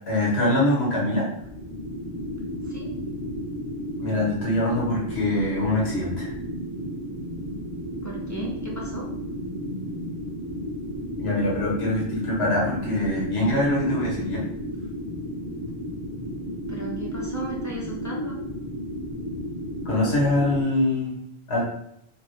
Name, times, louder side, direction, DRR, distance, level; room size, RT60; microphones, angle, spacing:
voice 1, 0.1-1.3 4.0-6.3 11.2-14.4 19.8-21.1 21.5-21.6, left 1 dB, 85° left, -4 dB, 1.5 m, -23 dB
sound 1, 1.3-20.6, equal, 25° right, 0.9 m, -33 dB
voice 2, 8.0-9.1 16.7-18.4, right 2 dB, 20° left, -2 dB, 0.5 m, -35 dB
3.8 x 2.8 x 3.1 m, 0.75 s
omnidirectional pair, 1.0 m